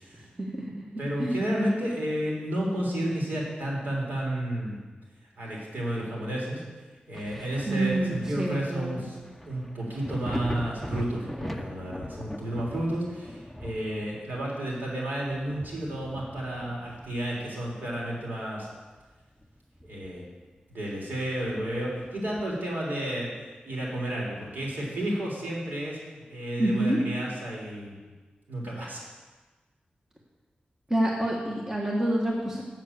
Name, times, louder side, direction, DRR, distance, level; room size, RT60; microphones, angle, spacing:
voice 1, 0.2-1.4 7.7-9.0 26.6-27.0 30.9-32.6, right 1 dB, 15° right, -2 dB, 1.5 m, -28 dB
voice 2, 1.0-4.8 5.4-6.6 7.1-9.2 9.5-18.7 19.8-20.2 20.7-23.3 23.6-26.0 26.3-28.0 28.5-29.0, right 1 dB, 80° right, -4 dB, 3.6 m, -31 dB
Thunder, 7.1-18.5 18.9-20.4 20.7-20.8 21.4-22.7 24.1-24.2, equal, 5° left, 0.7 m, -41 dB
7.4 x 7.4 x 8.4 m, 1.3 s
wide cardioid pair, 90°, 3 cm